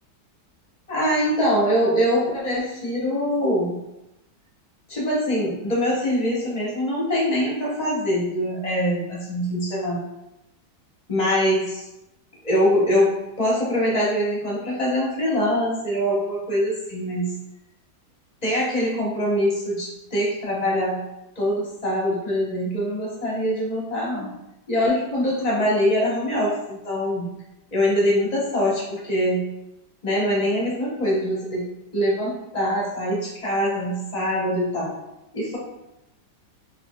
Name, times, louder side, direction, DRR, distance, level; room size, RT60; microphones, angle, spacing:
voice 1, 0.9-3.8 4.9-10.0 11.1-11.8 12.4-17.3 18.4-21.0 21.4-24.3 24.7-27.3 27.7-29.4 30.0-31.7 31.9-34.9 35.3-35.6, equal, 35° left, -5 dB, 0.7 m, -23 dB
5.0 x 2.7 x 2.2 m, 0.91 s
omnidirectional pair, 2.2 m